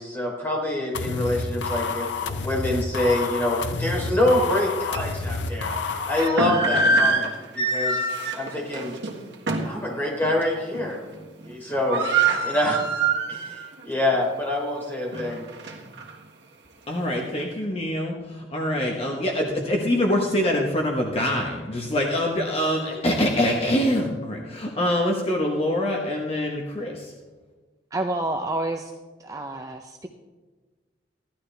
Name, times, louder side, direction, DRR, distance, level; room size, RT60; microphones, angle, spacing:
voice 1, 0.0-5.8 6.1-8.1 8.4-8.9 9.6-11.0 11.4-12.1 12.4-15.5, left 1 dB, 10° left, -3 dB, 3.4 m, -26 dB
sound 1, 0.9-6.3, left 4 dB, 80° left, 0.7 m, -29 dB
sound 2, 4.3-4.4 4.9-5.0 6.0-9.8 10.2-10.4 10.7-11.2 11.4-11.5 11.7-13.7 14.1-14.2 14.8-16.1, right 3 dB, 75° right, 1.6 m, -25 dB
voice 2, 16.9-27.1, left 1 dB, 35° left, 0 dB, 1.1 m, -25 dB
voice 3, 27.9-28.9 29.2-30.1, right 2 dB, 20° right, 3 dB, 0.6 m, -29 dB
15.5 x 11.5 x 3.3 m, 1.3 s
head